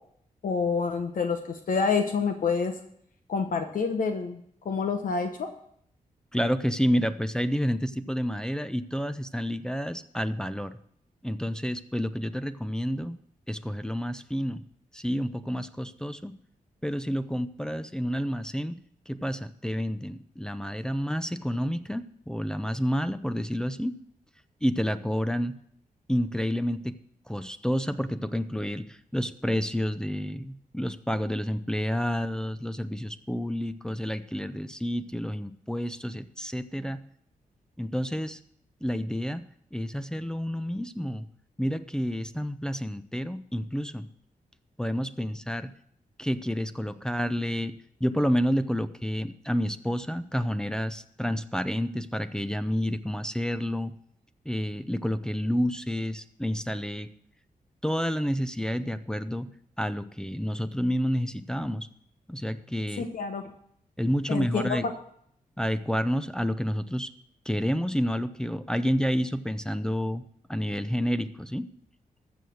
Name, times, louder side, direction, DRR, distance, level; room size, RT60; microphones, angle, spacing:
voice 1, 0.4-2.7 3.3-4.4 4.6-5.5 63.0-63.4 64.3-64.8, left 5 dB, 65° left, 6 dB, 1.0 m, -27 dB
voice 2, 6.3-10.8 11.2-13.2 13.5-14.6 14.9-16.4 16.8-18.8 19.1-24.0 24.6-25.5 26.1-27.0 27.3-37.0 37.8-38.4 38.8-39.4 39.7-41.3 41.6-44.1 44.8-45.7 46.2-47.7 48.0-53.9 54.5-57.1 57.8-59.5 59.8-61.9 62.3-63.1 64.0-64.9 65.6-67.1 67.5-70.2 70.5-71.7, equal, 5° left, 10 dB, 0.6 m, -29 dB
14.0 x 6.4 x 6.3 m, 0.68 s
cardioid pair, 90°, 15 cm